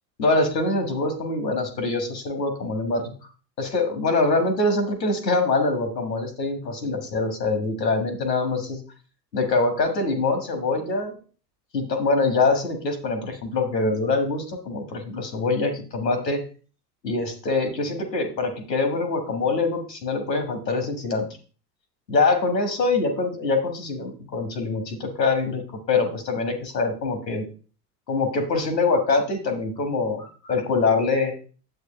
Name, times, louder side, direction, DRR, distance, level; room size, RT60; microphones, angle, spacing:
voice 1, 0.2-3.1 3.6-8.8 9.3-11.2 11.7-16.4 17.0-21.3 22.1-27.5 28.1-31.3, left 3 dB, 85° left, 7 dB, 1.8 m, -24 dB
9.8 x 8.0 x 3.2 m, 0.37 s
figure-of-eight pair, 65°, 49 cm